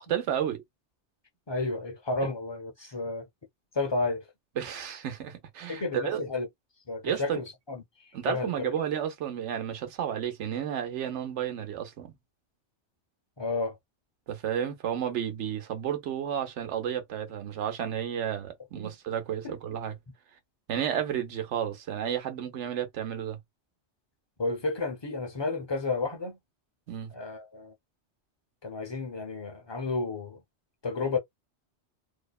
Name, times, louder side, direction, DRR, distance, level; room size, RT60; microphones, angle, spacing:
voice 1, 0.1-0.6 4.6-6.2 7.0-7.4 8.1-12.1 14.3-19.9 20.7-23.4 26.9-27.1, right 9 dB, 85° right, 1.0 m, -32 dB
voice 2, 1.5-3.3 3.7-4.2 5.7-6.5 6.9-8.7 13.4-13.8 18.8-18.9 19.4-19.6 24.4-26.4 27.1-27.7 28.6-30.4 30.8-31.2, left 3 dB, 30° left, 0.6 m, -32 dB
2.7 x 2.0 x 2.3 m
omnidirectional pair, 1.2 m